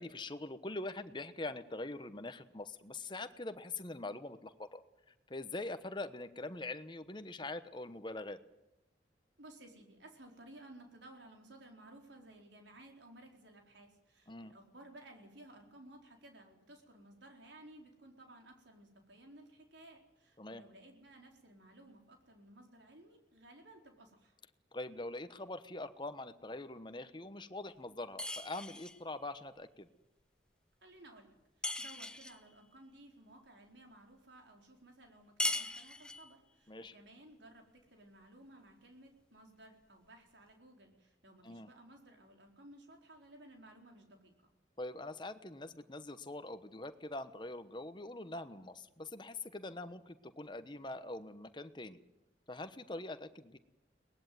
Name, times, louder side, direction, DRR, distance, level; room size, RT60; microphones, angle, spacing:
voice 1, 0.0-8.4 14.3-14.5 20.4-20.6 24.7-29.9 36.7-37.0 41.4-41.7 44.8-52.0 52.5-53.6, left 2 dB, 25° left, 10 dB, 1.1 m, -43 dB
voice 2, 9.4-24.4 30.8-31.4 31.8-44.5, right 1 dB, 80° right, 3 dB, 4.3 m, -57 dB
sound 1, 28.2-29.0 31.6-32.4 35.4-36.3, left 2 dB, 5° left, 1.0 m, -38 dB
22.5 x 19.5 x 9.3 m, 0.94 s
head